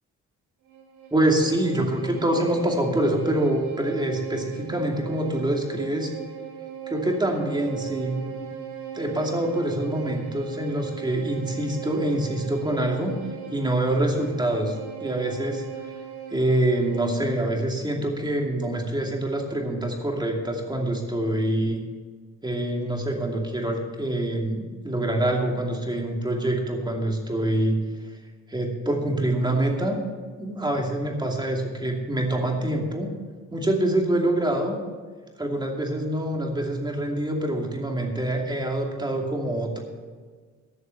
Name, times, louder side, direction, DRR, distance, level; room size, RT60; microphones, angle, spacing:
Bowed string instrument, 0.7-17.3, right 9 dB, 85° right, 2.3 m, -38 dB
voice 1, 1.1-6.1 6.9-8.5 8.9-13.2 13.5-15.7 16.3-21.8 22.4-27.8 28.5-30.0 30.4-33.1 33.5-34.8 35.4-39.8, right 1 dB, 15° right, 1 dB, 2.5 m, -25 dB
12.0 x 6.5 x 7.7 m, 1.5 s
cardioid pair, 90°, 30 cm